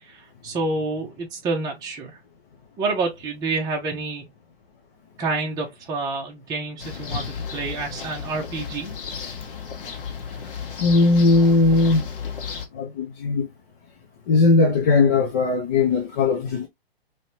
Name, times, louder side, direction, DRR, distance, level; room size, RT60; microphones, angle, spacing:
voice 1, 0.0-2.2 2.8-4.3 5.2-8.9, right 3 dB, 10° right, 0.7 m, -28 dB
sound 1, 6.8-12.7, left 6 dB, 60° left, 1.1 m, -33 dB
voice 2, 10.8-12.1 12.7-13.5 14.3-16.7, left 3 dB, 15° left, 0.3 m, -18 dB
3.0 x 2.8 x 3.0 m
figure-of-eight pair, 125°, 31 cm